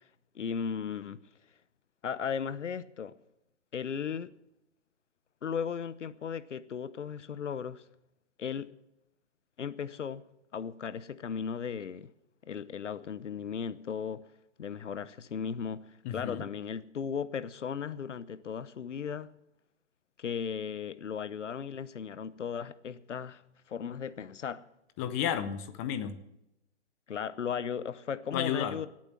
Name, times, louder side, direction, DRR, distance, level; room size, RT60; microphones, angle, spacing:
voice 1, 0.3-1.2 2.0-3.1 3.7-4.3 5.4-7.8 8.4-8.7 9.6-10.2 10.5-12.1 12.4-14.2 14.6-19.3 20.2-23.4 23.7-24.6 27.1-28.9, left 7 dB, 85° left, 0.9 m, -36 dB
voice 2, 16.0-16.4 25.0-26.2 28.3-28.7, left 9 dB, 15° left, 0.5 m, -32 dB
16.5 x 9.0 x 7.4 m
hypercardioid pair, 145°, 35 cm